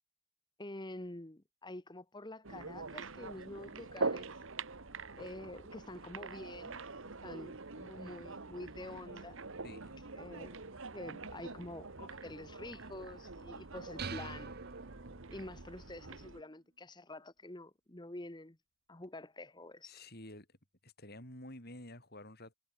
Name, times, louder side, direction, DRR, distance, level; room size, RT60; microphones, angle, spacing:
voice 1, 0.6-4.3 5.2-6.8 7.2-9.4 10.2-10.6 10.9-14.5 15.3-18.6 18.9-19.9, left 1 dB, 20° left, 1.2 m, -47 dB
sound 1, 2.4-16.4, right 3 dB, 60° right, 1.4 m, -44 dB
voice 2, 9.6-10.0 19.8-20.6 20.8-22.5, left 1 dB, 45° left, 6.9 m, -50 dB
sound 2, 14.0-15.6, right 5 dB, 45° right, 0.8 m, -45 dB
head